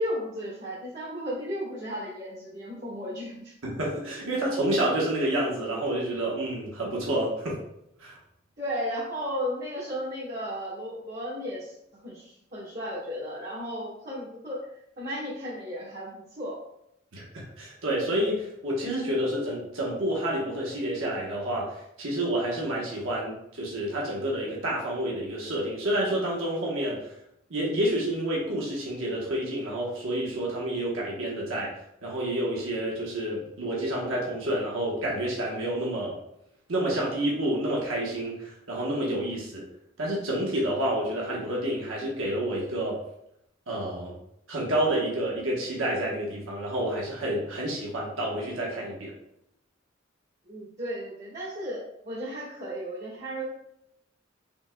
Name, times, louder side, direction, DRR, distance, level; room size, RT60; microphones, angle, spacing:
voice 1, 0.0-3.5 8.6-11.7 12.0-14.6 15.0-16.6 50.5-53.4, equal, 55° right, -11 dB, 1.4 m, -34 dB
voice 2, 3.6-7.6 8.0-8.1 17.1-27.1 27.5-31.7 32.0-36.2 36.7-39.6 40.0-43.0 43.7-44.1 44.5-49.1, right 1 dB, 90° right, -3 dB, 1.1 m, -29 dB
5.1 x 3.7 x 2.2 m, 0.78 s
head